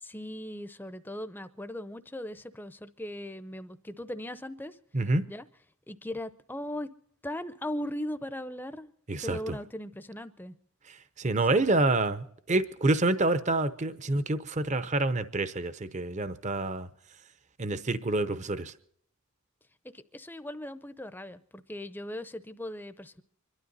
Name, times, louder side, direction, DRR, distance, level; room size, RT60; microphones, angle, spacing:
voice 1, 0.0-4.8 5.3-5.5 5.9-6.9 7.2-8.9 9.2-10.6 11.5-11.7 19.9-23.2, left 1 dB, 10° left, 12 dB, 0.7 m, -38 dB
voice 2, 9.1-9.6 10.9-16.9 17.6-18.7, right 2 dB, 35° right, 12 dB, 0.7 m, -27 dB
25.5 x 12.5 x 4.1 m, 0.66 s
head